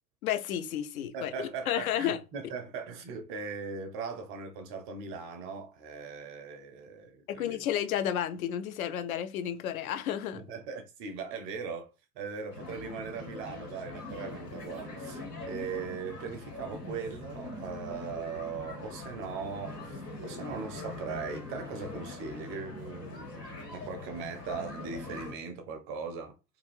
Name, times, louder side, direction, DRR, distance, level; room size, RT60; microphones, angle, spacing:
voice 1, 0.2-2.2 7.3-10.4, left 10 dB, 60° left, 0.5 m, -32 dB
voice 2, 1.1-7.7 10.3-26.3, right 5 dB, 30° right, 0.4 m, -39 dB
sound 1, 12.5-25.3, left 2 dB, 85° left, 1.6 m, -42 dB
2.5 x 2.3 x 3.2 m
figure-of-eight pair, 85°, 48 cm